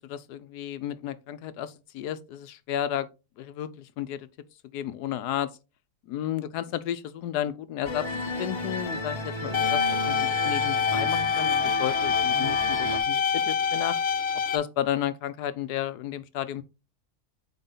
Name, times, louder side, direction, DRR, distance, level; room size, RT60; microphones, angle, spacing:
voice 1, 0.0-3.1 3.4-4.3 4.7-5.5 6.1-14.0 14.5-16.6, left 11 dB, 85° left, 1.2 m, -33 dB
sound 1, 7.8-13.0, left 1 dB, 25° left, 0.7 m, -33 dB
sound 2, 9.5-14.6, left 7 dB, 50° left, 0.9 m, -26 dB
8.1 x 4.1 x 3.8 m
omnidirectional pair, 1.7 m